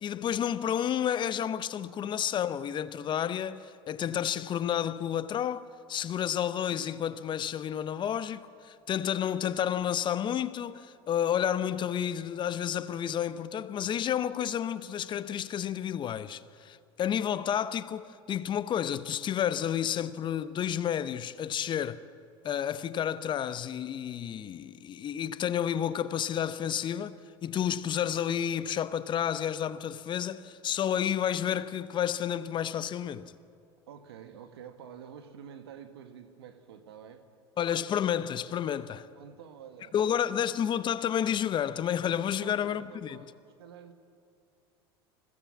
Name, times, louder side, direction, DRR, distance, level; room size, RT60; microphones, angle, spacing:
voice 1, 0.0-22.0 22.4-33.3 37.6-39.1 39.9-43.2, left 9 dB, 40° left, 0.8 m, -31 dB
voice 2, 33.9-37.2 39.1-40.5 42.2-43.9, right 8 dB, 80° right, 1.6 m, -49 dB
21.5 x 17.0 x 7.3 m
hypercardioid pair, 85°, 13 cm